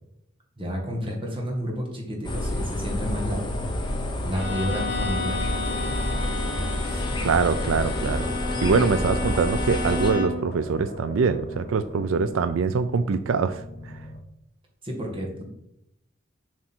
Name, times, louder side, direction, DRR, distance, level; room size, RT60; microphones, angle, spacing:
voice 1, 0.6-3.4 4.2-5.4 14.8-15.4, equal, 25° right, 0 dB, 1.7 m, -30 dB
sound 1, 2.2-10.1, left 1 dB, 25° left, 1.0 m, -29 dB
sound 2, 2.7-14.2, left 2 dB, 40° left, 0.7 m, -42 dB
Bowed string instrument, 4.3-10.5, left 3 dB, 60° left, 2.1 m, -32 dB
voice 2, 6.8-8.3 8.6-13.6 13.9-14.0, right 5 dB, 80° right, 11 dB, 0.4 m, -24 dB
7.4 x 5.0 x 4.5 m, 0.80 s
head